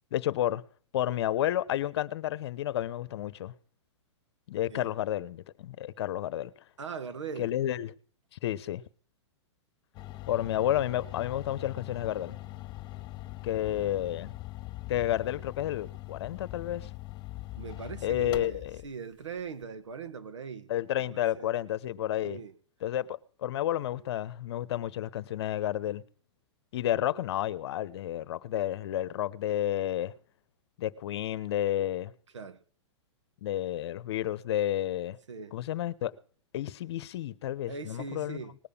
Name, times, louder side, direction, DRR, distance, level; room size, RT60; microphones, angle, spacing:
voice 1, 0.1-0.6 0.9-3.5 4.5-6.5 7.4-7.9 8.4-8.8 10.3-12.4 13.4-14.3 14.9-16.9 18.0-18.8 20.7-22.4 22.8-26.0 26.7-30.1 30.8-32.1 33.4-35.2 35.5-36.1 36.5-38.4, left 12 dB, 60° left, 1.0 m, -31 dB
voice 2, 6.8-7.5 13.7-13.9 17.6-20.7 21.0-21.5 22.2-22.5 32.3-32.6 35.3-35.6 37.7-38.5, right 5 dB, 85° right, 1.5 m, -41 dB
sound 1, 9.9-18.9, left 17 dB, 30° left, 1.9 m, -42 dB
19.5 x 6.8 x 7.2 m
hypercardioid pair, 125°, 15 cm